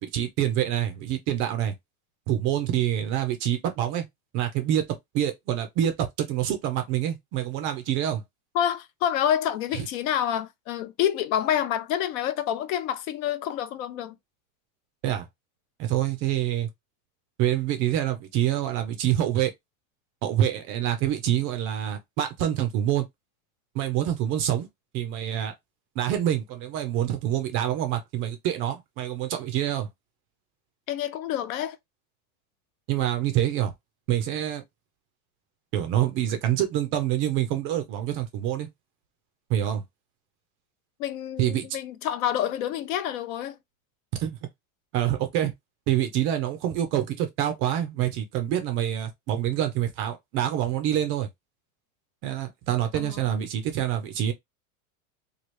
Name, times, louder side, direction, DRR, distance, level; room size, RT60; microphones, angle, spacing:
voice 1, 0.0-1.7 2.3-4.0 4.3-4.8 5.1-8.2 9.7-9.8 15.0-15.3 15.8-16.7 17.4-19.5 20.2-23.0 23.7-24.7 24.9-25.5 26.0-29.9 32.9-33.7 34.1-34.6 35.7-38.7 39.5-39.8 41.4-41.7 44.2-44.4 44.9-45.5 45.9-51.3 52.2-54.3, right 11 dB, 30° right, 0.4 m, -26 dB
voice 2, 8.5-14.1 30.9-31.8 41.0-43.6 52.9-53.4, left 10 dB, 65° left, 0.7 m, -28 dB
3.0 x 2.4 x 3.0 m
supercardioid pair, 155°, 43 cm